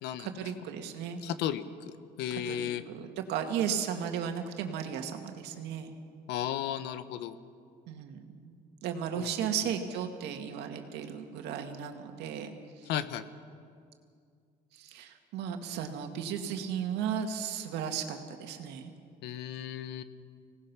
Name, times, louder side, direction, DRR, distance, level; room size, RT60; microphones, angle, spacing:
voice 1, 0.2-1.2 2.3-5.9 7.9-8.5 8.8-12.9 14.7-18.9, right 8 dB, 90° right, 5 dB, 2.0 m, -35 dB
voice 2, 1.2-2.8 6.3-7.4 9.2-9.3 12.9-13.2 19.2-20.0, left 10 dB, 85° left, 12 dB, 1.1 m, -34 dB
25.5 x 18.5 x 6.1 m, 2.3 s
cardioid pair, 110°, 17 cm